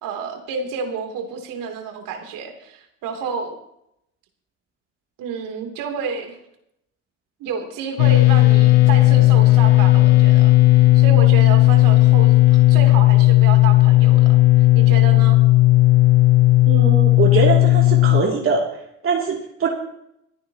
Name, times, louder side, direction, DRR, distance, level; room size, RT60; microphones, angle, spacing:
voice 1, 0.0-3.6 5.2-6.4 7.4-15.4, right 6 dB, 60° right, 3 dB, 3.0 m, -30 dB
sound 1, 8.0-18.2, left 17 dB, 70° left, 1.0 m, -13 dB
voice 2, 16.7-18.6 19.0-19.7, right 4 dB, 35° right, -1 dB, 2.8 m, -22 dB
27.0 x 9.4 x 2.9 m, 0.78 s
hypercardioid pair, 75°, 37 cm